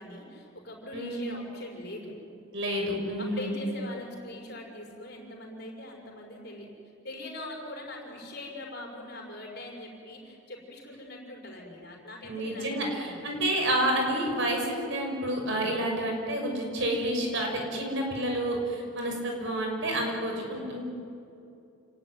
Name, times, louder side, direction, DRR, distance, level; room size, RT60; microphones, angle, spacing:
voice 1, 0.0-2.1 3.2-6.7 7.0-13.4, left 1 dB, 50° left, 0 dB, 6.0 m, -42 dB
voice 2, 0.9-1.3 2.5-3.6 12.3-20.8, right 1 dB, 55° right, 2 dB, 6.1 m, -29 dB
28.5 x 19.5 x 9.8 m, 2.6 s
head